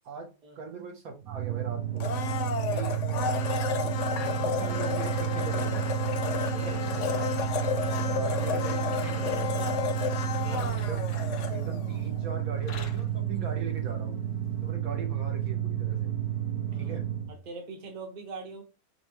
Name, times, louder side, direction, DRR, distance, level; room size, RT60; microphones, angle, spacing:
voice 1, 0.0-2.2 2.7-3.0 3.7-5.9 6.5-7.5 8.1-9.8 10.5-11.1 11.5-14.2 14.6-16.2 16.8-17.1, right 4 dB, 70° right, 3 dB, 1.2 m, -40 dB
sound 1, 1.3-17.4, right 11 dB, 90° right, 1.2 m, -31 dB
Domestic sounds home sounds, 2.0-11.9 12.2-12.3, left 8 dB, 65° left, 0.8 m, -32 dB
sound 2, 4.9-9.6 10.4-12.2 12.5-13.1 13.7-13.9 14.6-14.7, left 4 dB, 90° left, 1.5 m, -47 dB
voice 2, 6.5-6.8 10.4-10.7 16.7-17.0 17.3-18.6, right 3 dB, 35° right, 3 dB, 1.0 m, -42 dB
5.5 x 2.2 x 2.9 m, 0.29 s
omnidirectional pair, 1.6 m